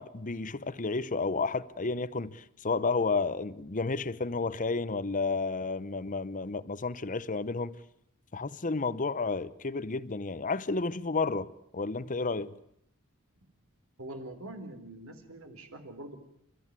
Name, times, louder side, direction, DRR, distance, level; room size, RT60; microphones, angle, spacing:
voice 1, 0.0-7.7 8.3-12.5, left 4 dB, 35° left, 0.9 m, -31 dB
voice 2, 14.0-16.2, right 1 dB, 70° right, 4.0 m, -44 dB
29.5 x 14.0 x 9.7 m
head